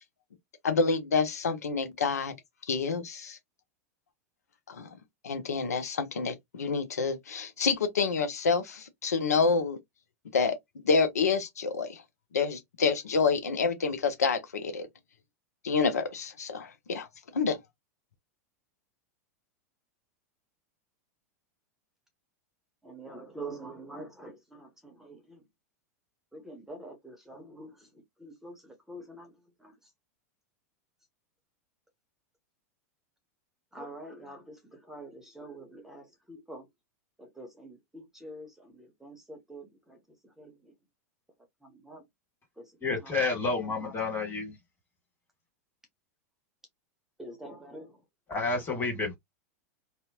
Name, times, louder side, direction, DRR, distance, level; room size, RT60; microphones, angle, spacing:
voice 1, 0.6-2.3 2.7-3.4 4.7-4.9 5.2-9.8 10.3-10.6 10.8-12.0 12.3-14.9 15.6-17.1 17.3-17.6, left 4 dB, 85° left, 0.5 m, -28 dB
voice 2, 22.8-25.4 26.3-29.3 29.6-29.7 33.7-36.7 37.2-40.0 40.4-40.7 41.6-42.0 42.6-42.7 43.0-43.1 43.7-43.9 47.2-48.0, right 2 dB, 5° right, 0.8 m, -46 dB
voice 3, 42.8-44.5 48.3-49.1, left 3 dB, 25° left, 1.8 m, -30 dB
2.7 x 2.0 x 2.7 m
hypercardioid pair, 100°, 8 cm